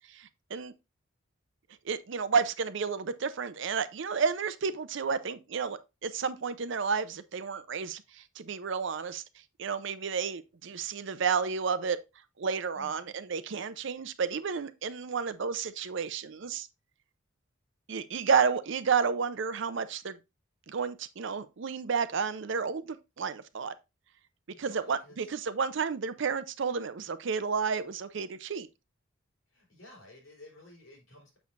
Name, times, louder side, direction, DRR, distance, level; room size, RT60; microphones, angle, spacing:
voice 1, 0.1-0.7 1.9-8.0 8.4-9.2 9.6-12.0 12.4-16.7 17.9-20.2 20.7-23.7 24.6-28.7, right 5 dB, 65° right, 0.5 m, -31 dB
voice 2, 12.7-13.1 24.5-25.2 29.5-31.4, left 1 dB, 65° left, 3.9 m, -53 dB
7.0 x 6.3 x 2.5 m
head